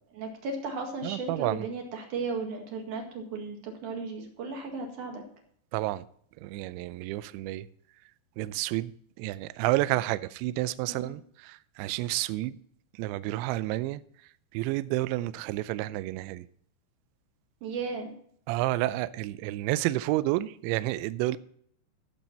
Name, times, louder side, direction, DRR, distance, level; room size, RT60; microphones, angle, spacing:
voice 1, 0.1-5.2 10.9-11.1 17.6-18.1, right 4 dB, 55° right, 2 dB, 2.9 m, -35 dB
voice 2, 1.0-1.6 5.7-6.1 6.4-7.7 8.4-12.6 12.9-14.0 14.5-16.5 18.5-21.4, right 17 dB, 85° right, 16 dB, 2.7 m, -30 dB
15.0 x 7.4 x 4.2 m, 0.63 s
omnidirectional pair, 5.4 m